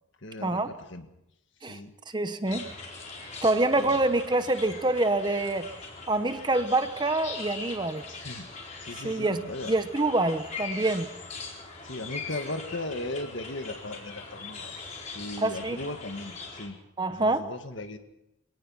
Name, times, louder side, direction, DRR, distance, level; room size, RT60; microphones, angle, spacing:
voice 1, 0.2-1.1 1.6-1.9 3.8-4.0 8.1-8.5 8.8-9.7 11.8-14.7 15.1-16.8 17.1-18.0, left 2 dB, 60° left, 7 dB, 1.9 m, -37 dB
voice 2, 2.1-2.7 3.4-5.7 6.1-8.0 9.0-9.4 9.7-11.1 15.4-15.8 17.0-17.4, right 2 dB, 20° right, 10 dB, 0.9 m, -26 dB
sound 1, 2.5-16.7, left 4 dB, 35° left, 4.5 m, -41 dB
25.0 x 18.0 x 5.8 m, 0.84 s
head